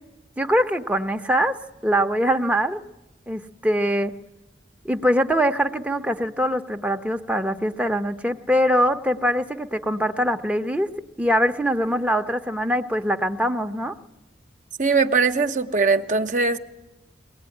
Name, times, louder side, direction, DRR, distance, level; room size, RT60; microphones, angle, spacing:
voice 1, 0.4-1.5 1.8-2.8 3.3-4.1 4.8-10.9 11.2-13.9, equal, 10° right, 5 dB, 0.8 m, -23 dB
voice 2, 14.8-16.6, right 4 dB, 45° right, 7 dB, 0.9 m, -20 dB
22.5 x 18.0 x 9.8 m, 1.0 s
head